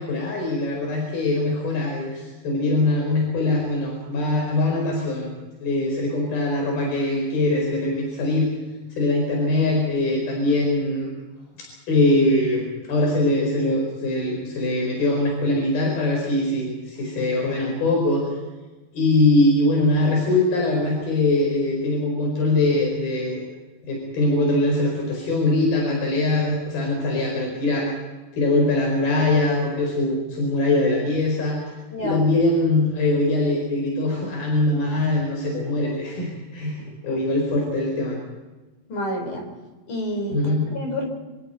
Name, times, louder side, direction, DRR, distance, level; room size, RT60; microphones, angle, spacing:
voice 1, 0.0-5.3 5.6-8.5 8.9-11.1 11.6-18.3 18.9-23.4 23.8-27.9 28.4-38.2 40.3-40.7, left 2 dB, 90° left, 0 dB, 6.8 m, -22 dB
voice 2, 38.9-39.5 39.9-41.1, equal, 60° left, 3 dB, 6.5 m, -29 dB
27.5 x 26.0 x 4.5 m, 1.2 s
omnidirectional pair, 4.2 m